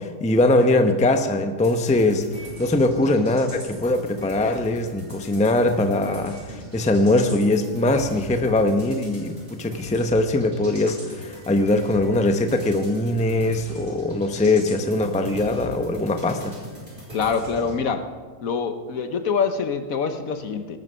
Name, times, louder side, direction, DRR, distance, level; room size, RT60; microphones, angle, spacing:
voice 1, 0.0-16.6, left 2 dB, 5° left, 7 dB, 0.6 m, -21 dB
sound 1, 1.6-17.8, equal, 30° right, 6.9 m, -40 dB
voice 2, 17.1-18.1 18.4-20.8, left 5 dB, 60° left, 9 dB, 1.3 m, -25 dB
19.0 x 11.0 x 5.6 m, 1.5 s
omnidirectional pair, 1.7 m